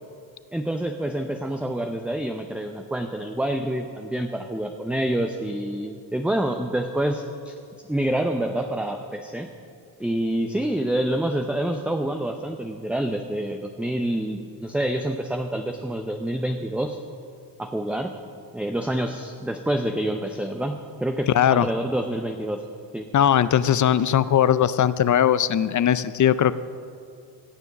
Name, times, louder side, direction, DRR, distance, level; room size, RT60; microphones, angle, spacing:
voice 1, 0.5-7.5 7.9-9.5 10.0-17.0 17.6-18.1 18.5-22.6 22.9-23.1, right 1 dB, 5° right, 5 dB, 0.6 m, -27 dB
voice 2, 21.3-21.7 23.1-26.6, left 10 dB, 45° left, 16 dB, 0.5 m, -19 dB
16.5 x 7.0 x 6.0 m, 2.4 s
cardioid pair, 65°, 45 cm